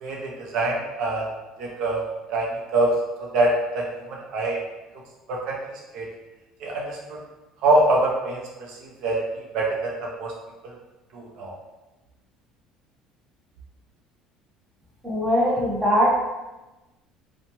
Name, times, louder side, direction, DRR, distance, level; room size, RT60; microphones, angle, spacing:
voice 1, 0.0-1.2 1.6-2.0 2.3-2.9 3.3-4.6 5.3-5.5 5.9-6.1 6.6-7.2 7.6-8.4 8.7-9.2 9.5-10.3 11.1-11.5, right 2 dB, 60° right, -2 dB, 0.5 m, -24 dB
voice 2, 15.0-16.1, equal, 10° right, -5 dB, 0.7 m, -21 dB
2.8 x 2.1 x 2.9 m, 1.1 s
cardioid pair, 150°, 0 cm